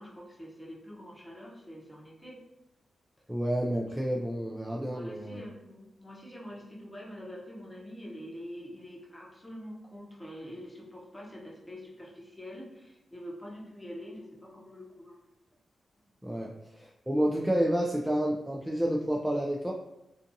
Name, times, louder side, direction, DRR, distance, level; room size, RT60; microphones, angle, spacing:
voice 1, 0.0-2.4 4.8-15.2, equal, 10° left, -3 dB, 0.8 m, -45 dB
voice 2, 3.3-5.4 16.2-19.7, equal, 10° right, -2 dB, 0.3 m, -30 dB
2.6 x 2.5 x 2.6 m, 0.91 s
cardioid pair, 70°, 0 cm